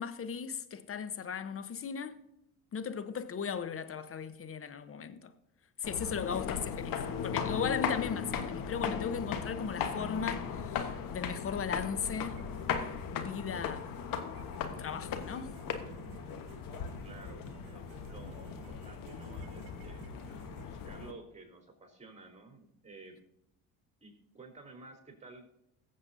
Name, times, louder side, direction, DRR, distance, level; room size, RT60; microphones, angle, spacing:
voice 1, 0.0-2.2 2.7-5.3 5.8-12.4 13.1-13.9 14.6-15.5, left 6 dB, 30° left, 1.0 m, -37 dB
sound 1, 5.8-21.1, left 7 dB, 50° left, 1.3 m, -37 dB
sound 2, 12.1-20.7, right 7 dB, 60° right, 1.4 m, -53 dB
voice 2, 17.0-20.0 20.7-23.2 24.0-25.5, right 3 dB, 15° right, 4.0 m, -52 dB
21.5 x 7.5 x 2.7 m
hypercardioid pair, 60°, 42 cm